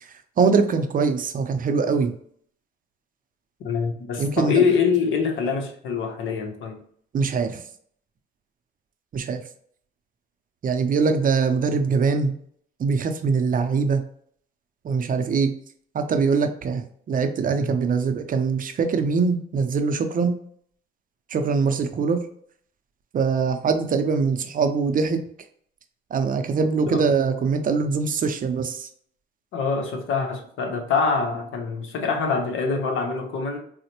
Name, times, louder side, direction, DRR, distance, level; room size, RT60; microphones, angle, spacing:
voice 1, 0.4-2.1 4.2-4.7 7.1-7.6 9.1-9.4 10.6-12.4 12.8-14.0 14.8-15.5 15.9-20.4 21.3-22.2 23.1-25.2 26.1-28.9, right 5 dB, 45° right, 7 dB, 0.5 m, -22 dB
voice 2, 3.6-6.8 26.9-27.1 29.5-33.6, left 5 dB, 80° left, 4 dB, 0.8 m, -24 dB
4.0 x 2.0 x 2.8 m, 0.62 s
cardioid pair, 90°, 20 cm